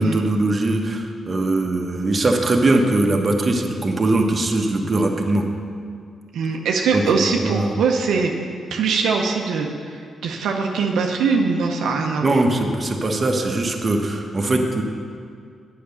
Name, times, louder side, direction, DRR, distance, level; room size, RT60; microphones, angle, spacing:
voice 1, 0.0-5.4 6.9-7.7 12.2-14.8, right 2 dB, 35° right, 2 dB, 1.1 m, -21 dB
voice 2, 6.3-8.3 8.7-9.7 10.2-12.4, right 5 dB, 85° right, 1 dB, 0.6 m, -21 dB
8.6 x 5.8 x 6.9 m, 2.2 s
cardioid pair, 65°, 0 cm